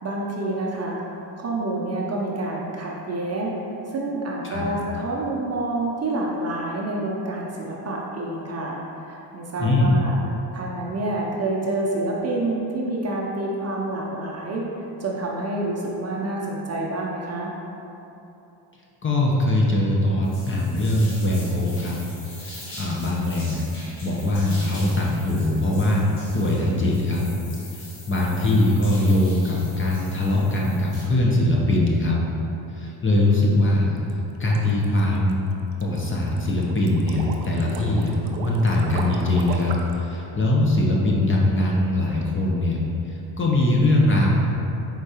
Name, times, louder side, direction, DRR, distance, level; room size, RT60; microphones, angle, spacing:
voice 1, 0.0-3.6 3.9-10.1 10.5-14.6 15.0-17.5, right 2 dB, 30° right, -3 dB, 0.6 m, -28 dB
voice 2, 9.6-10.0 19.0-22.0 22.4-23.6 24.0-26.1 26.3-27.2 27.7-32.2 32.8-34.0 34.4-35.4 35.8-38.1 38.4-42.8 43.4-44.3, left 1 dB, 25° left, -3 dB, 0.7 m, -21 dB
sound 1, 20.2-31.1, left 1 dB, 75° left, 1.5 m, -42 dB
sound 2, 34.0-40.0, right 3 dB, 80° right, 0.6 m, -36 dB
4.6 x 3.6 x 2.8 m, 3.0 s
supercardioid pair, 70°, 50 cm